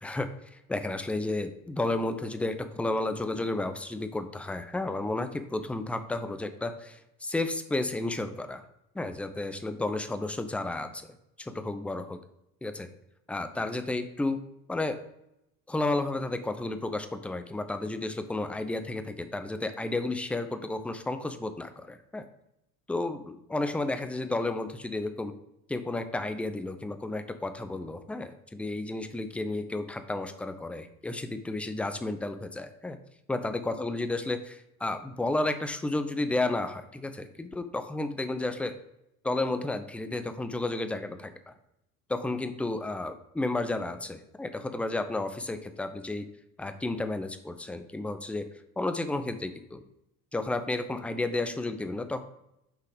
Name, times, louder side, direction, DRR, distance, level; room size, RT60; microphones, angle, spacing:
voice 1, 0.0-8.6 9.0-11.1 11.4-12.2 12.6-12.9 13.3-14.4 14.7-15.0 15.7-22.2 22.9-25.3 25.7-33.0 33.3-38.7 39.2-41.5 42.1-46.2 46.6-48.4 48.8-49.8 50.3-52.2, left 2 dB, 5° left, 8 dB, 0.3 m, -32 dB
5.8 x 3.8 x 5.1 m, 0.82 s
hypercardioid pair, 70°, 46 cm